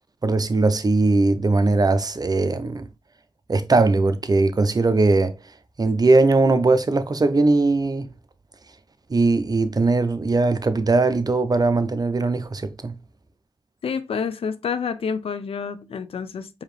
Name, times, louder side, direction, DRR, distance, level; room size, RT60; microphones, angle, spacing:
voice 1, 0.2-2.9 3.5-5.4 5.8-8.1 9.1-12.9, right 3 dB, 40° right, 0.6 m, -20 dB
voice 2, 13.8-16.6, left 6 dB, 80° left, 0.5 m, -28 dB
4.8 x 2.9 x 3.1 m
cardioid pair, 40°, 10 cm